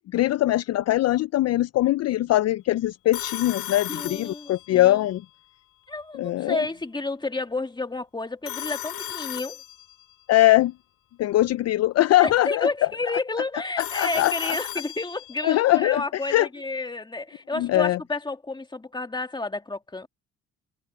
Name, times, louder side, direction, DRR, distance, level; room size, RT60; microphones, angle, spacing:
voice 1, 0.1-5.2 6.1-6.6 10.3-10.7 11.2-12.7 13.8-14.6 15.4-16.0 16.3-16.5 17.6-18.0, left 15 dB, 60° left, 0.4 m, -21 dB
Telephone, 3.1-4.9 8.4-10.1 13.8-15.5, left 12 dB, 75° left, 2.2 m, -35 dB
voice 2, 3.9-5.0 5.9-9.6 12.2-20.1, left 3 dB, 15° left, 2.1 m, -31 dB
cardioid pair, 90°, 30 cm